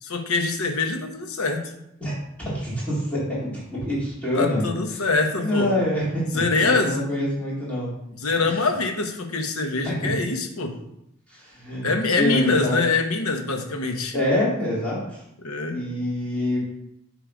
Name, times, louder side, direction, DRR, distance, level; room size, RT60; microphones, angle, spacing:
voice 1, 0.0-1.6 4.4-5.7 6.3-7.0 8.2-10.8 11.8-14.2 15.4-15.8, left 3 dB, 80° left, 4 dB, 1.1 m, -24 dB
voice 2, 2.4-5.0 5.4-7.9 9.8-10.1 11.3-11.9 12.2-12.8 14.1-15.2 15.7-16.6, left 1 dB, 5° left, -8 dB, 2.7 m, -26 dB
9.1 x 3.4 x 5.1 m, 0.80 s
head